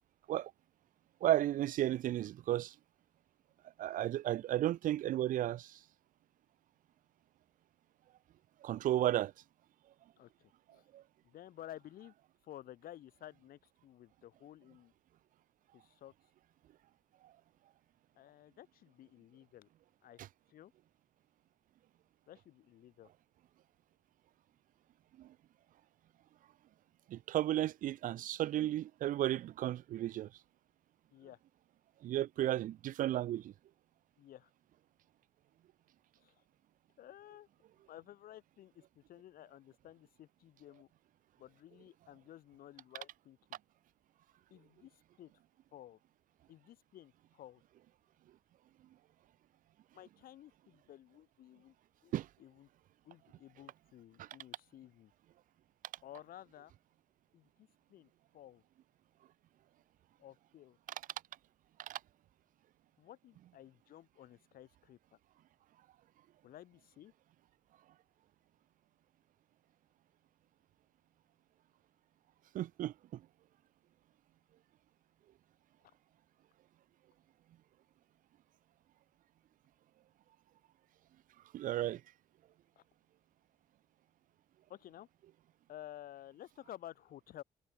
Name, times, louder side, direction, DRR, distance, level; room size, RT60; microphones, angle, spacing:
voice 1, 1.2-2.7 3.8-5.8 8.6-9.3 10.9-11.0 17.2-17.3 20.2-20.3 25.2-25.3 27.1-30.3 32.0-33.5 52.1-52.3 54.2-54.3 61.8-62.0 72.5-73.2 81.5-82.0, right 13 dB, 65° right, 0.4 m, -34 dB
voice 2, 10.2-10.8 11.2-12.1 12.4-14.9 15.7-16.1 18.1-19.7 20.0-20.2 20.5-20.7 22.3-23.1 31.1-31.4 34.2-34.5 36.2-36.3 37.0-37.5 37.9-40.9 41.4-43.4 44.5-45.3 45.7-46.0 46.5-47.6 49.9-51.7 52.0-52.1 52.4-52.7 53.0-55.1 56.0-56.7 57.3-58.6 60.2-60.8 63.0-65.0 66.4-67.1 82.8-82.9 84.7-85.1 85.7-87.4, left 12 dB, 75° left, 1.2 m, -54 dB
cardioid pair, 115°, 15 cm